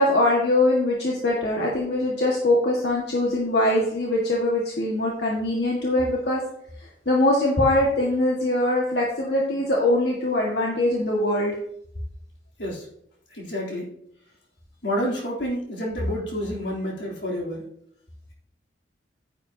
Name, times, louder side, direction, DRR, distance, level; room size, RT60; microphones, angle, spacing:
voice 1, 0.0-6.4 7.1-11.5, left 1 dB, 65° left, -3 dB, 1.9 m, -22 dB
voice 2, 13.3-13.9 14.8-17.6, equal, 85° left, -4 dB, 3.5 m, -28 dB
10.5 x 10.0 x 2.9 m, 0.70 s
head